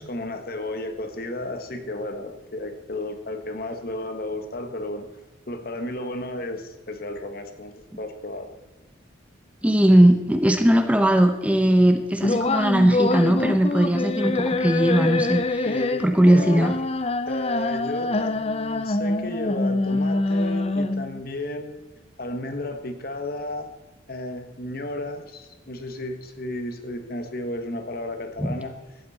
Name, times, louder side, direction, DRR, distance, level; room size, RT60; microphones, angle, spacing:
voice 1, 0.0-5.1 5.5-8.5 15.6-16.8 17.3-21.9 22.2-23.7 24.1-28.7, left 1 dB, 50° left, 7 dB, 1.5 m, -33 dB
voice 2, 9.6-15.7 16.0-16.7 28.4-28.6, right 1 dB, 5° right, 6 dB, 0.8 m, -19 dB
sound 1, 12.2-21.2, left 2 dB, 30° left, 0.6 m, -25 dB
17.0 x 12.5 x 4.3 m, 1.1 s
head